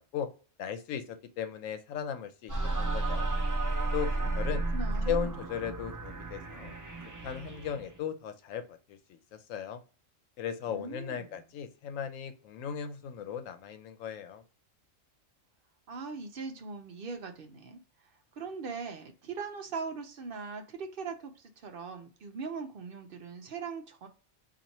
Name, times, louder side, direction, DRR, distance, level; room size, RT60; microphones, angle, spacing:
voice 1, 0.6-2.5 2.8-3.3 3.9-4.1 4.3-4.6 5.1-6.7 7.2-9.8 10.4-14.4, left 8 dB, 85° left, 9 dB, 1.0 m, -37 dB
sound 1, 2.5-8.0, right 2 dB, 30° right, 0.3 m, -32 dB
voice 2, 4.1-5.6 10.7-11.5 15.9-24.1, right 4 dB, 55° right, 6 dB, 0.7 m, -41 dB
3.0 x 2.5 x 3.9 m, 0.37 s
omnidirectional pair, 1.3 m